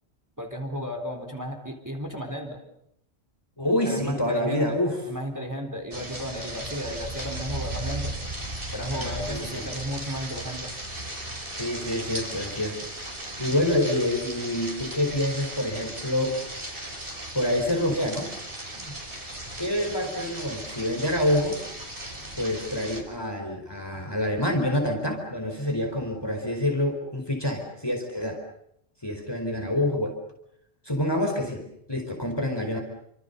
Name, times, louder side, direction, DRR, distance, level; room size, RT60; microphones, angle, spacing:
voice 1, 0.4-2.6 3.8-4.8 5.1-8.2 8.7-10.7, equal, 15° right, 4 dB, 4.0 m, -34 dB
voice 2, 3.6-5.0 8.8-9.7 11.6-12.8 13.4-16.4 17.3-18.3 18.8-19.0 19.6-21.6 22.4-28.4 29.0-30.2 30.8-32.8, left 1 dB, 20° left, 3 dB, 4.5 m, -27 dB
sound 1, 5.9-23.0, right 1 dB, 55° right, 5.6 m, -36 dB
29.5 x 25.5 x 6.9 m, 0.75 s
omnidirectional pair, 1.1 m